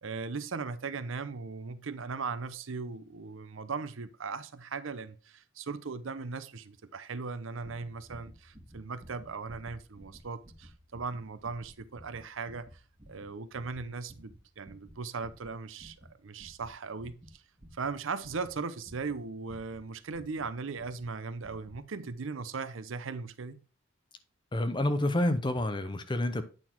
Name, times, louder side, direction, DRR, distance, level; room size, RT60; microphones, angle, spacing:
voice 1, 0.0-12.8 13.1-16.0 16.2-17.4 17.7-23.6, right 4 dB, 75° right, 0.7 m, -38 dB
sound 1, 7.6-20.5 20.8-21.1 21.4-21.8 22.1-22.2, equal, 25° right, 1.7 m, -54 dB
voice 2, 24.5-26.4, left 1 dB, 25° left, 0.7 m, -28 dB
8.9 x 4.1 x 4.4 m
head